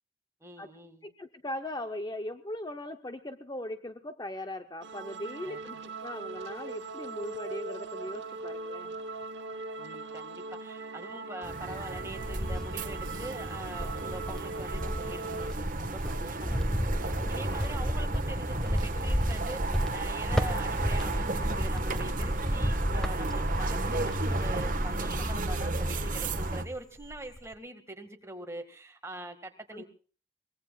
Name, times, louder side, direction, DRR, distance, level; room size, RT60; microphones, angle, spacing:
voice 1, 0.4-1.1 5.4-5.6 9.8-29.8, right 1 dB, 15° right, 5 dB, 1.9 m, -43 dB
voice 2, 1.0-8.9 17.2-17.4 29.7-29.8, left 1 dB, 20° left, 8 dB, 0.8 m, -39 dB
sound 1, 4.8-15.5, right 3 dB, 70° right, 1.0 m, -40 dB
sound 2, 11.4-26.6, right 2 dB, 45° right, 1.5 m, -34 dB
Cricket, 11.7-13.3 13.7-26.7 27.0-27.5, equal, 5° left, 1.4 m, -33 dB
23.5 x 20.5 x 2.4 m, 0.39 s
head